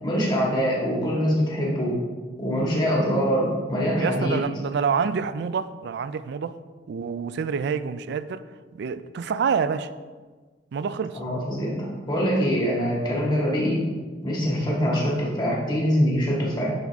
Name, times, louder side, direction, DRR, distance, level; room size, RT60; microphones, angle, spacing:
voice 1, 0.0-2.0 2.4-4.5 11.2-13.9 14.2-16.7, equal, 25° left, 1.8 m, -24 dB
voice 2, 4.0-6.6 6.9-8.4 8.7-9.9 10.7-11.2, right 6 dB, 65° right, 0.3 m, -27 dB
10.5 x 4.0 x 3.5 m
head